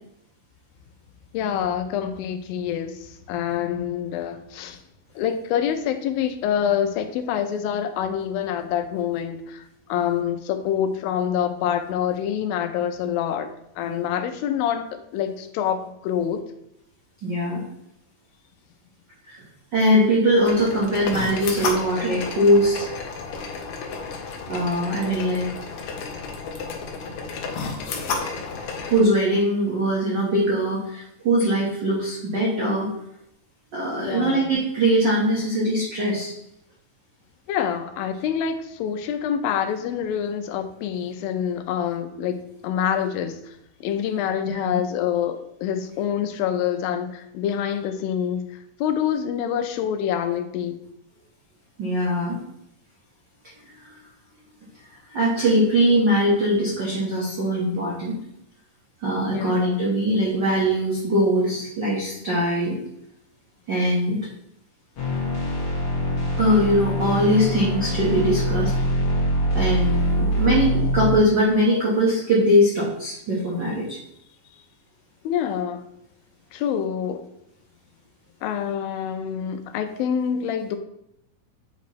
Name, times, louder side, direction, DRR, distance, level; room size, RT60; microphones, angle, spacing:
voice 1, 1.3-3.0 3.3-4.8 5.2-9.6 9.9-13.5 13.8-14.9 15.1-16.5 34.0-34.5 37.5-42.4 42.6-43.4 43.8-48.4 48.8-50.8 59.3-59.9 75.2-75.9 76.5-77.2 78.4-80.8, left 9 dB, 85° left, 8 dB, 2.4 m, -26 dB
voice 2, 17.2-17.6 19.3-19.4 19.7-22.9 24.5-25.5 28.8-32.9 33.7-36.3 44.5-44.8 51.8-52.4 53.7-54.0 54.9-58.2 59.0-62.8 63.7-64.3 66.4-68.7 69.5-74.0, equal, 80° right, -5 dB, 1.0 m, -21 dB
sound 1, 20.4-29.0, left 4 dB, 70° left, 1.9 m, -32 dB
sound 2, 65.0-71.1, equal, 50° left, 1.9 m, -24 dB
8.5 x 3.1 x 4.2 m, 0.80 s
omnidirectional pair, 4.1 m